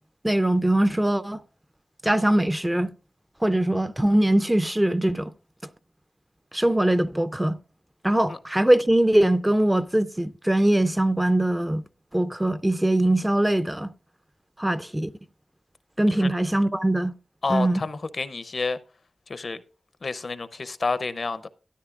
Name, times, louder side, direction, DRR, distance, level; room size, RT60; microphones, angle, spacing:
voice 1, 0.2-1.4 2.0-2.9 3.4-5.3 6.5-7.6 8.0-11.8 12.1-13.9 14.6-15.1 16.0-17.1 17.5-17.8, right 1 dB, 10° right, 0.4 m, -22 dB
voice 2, 17.4-18.8 19.3-19.6 20.0-21.5, left 3 dB, 50° left, 0.6 m, -29 dB
13.0 x 10.5 x 2.4 m
wide cardioid pair, 120°, 0 cm